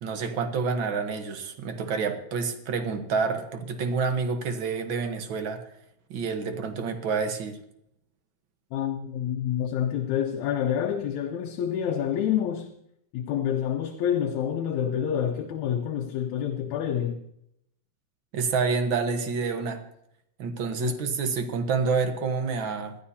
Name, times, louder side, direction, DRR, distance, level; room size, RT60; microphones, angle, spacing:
voice 1, 0.0-5.6 6.1-7.6 18.3-19.8 20.4-23.0, right 5 dB, 55° right, 1.6 m, -28 dB
voice 2, 8.7-12.7 13.1-17.2 20.8-21.0, left 9 dB, 75° left, 2.1 m, -28 dB
20.5 x 12.5 x 2.8 m
omnidirectional pair, 3.4 m